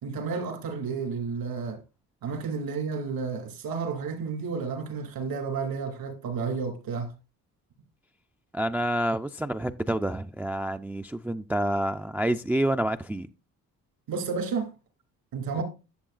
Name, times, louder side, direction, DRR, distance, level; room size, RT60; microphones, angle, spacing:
voice 1, 0.0-1.8 2.2-7.1 14.1-14.7 15.3-15.6, right 5 dB, 75° right, 2.6 m, -31 dB
voice 2, 8.5-13.3 15.6-15.7, right 1 dB, 5° right, 0.4 m, -28 dB
11.5 x 6.9 x 2.4 m
cardioid pair, 80°, 36 cm